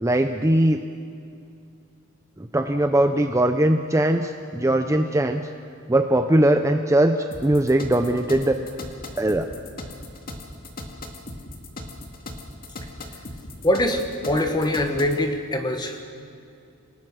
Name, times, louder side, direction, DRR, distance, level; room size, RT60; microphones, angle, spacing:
voice 1, 0.0-0.8 2.4-5.5 5.9-8.6 9.2-9.5, right 1 dB, 15° right, 6 dB, 0.7 m, -20 dB
sound 1, 7.3-15.2, left 2 dB, 45° left, 2.2 m, -38 dB
voice 2, 13.6-16.0, left 1 dB, 20° left, 5 dB, 1.7 m, -23 dB
28.0 x 18.5 x 6.5 m, 2.5 s
head